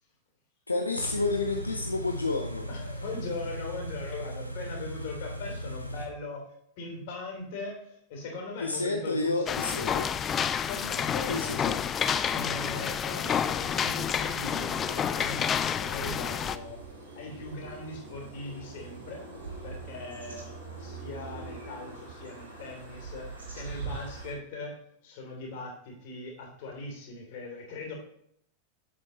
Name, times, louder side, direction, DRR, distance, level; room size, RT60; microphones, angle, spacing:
voice 1, 0.7-2.7 8.6-10.1 11.3-11.8, left 3 dB, 80° left, 4 dB, 0.6 m, -30 dB
Car / Idling, 1.0-6.1, equal, 90° right, 0.9 m, -38 dB
voice 2, 2.7-6.5 6.8-10.1 10.7-16.8 17.1-19.3 19.6-27.9, left 3 dB, 50° left, 0 dB, 3.3 m, -40 dB
sound 1, 9.5-16.6, left 8 dB, 25° left, 0.4 m, -29 dB
sound 2, 15.9-24.3, right 4 dB, 70° right, 1.9 m, -42 dB
8.5 x 7.5 x 3.1 m, 0.69 s
figure-of-eight pair, 90°, 0 cm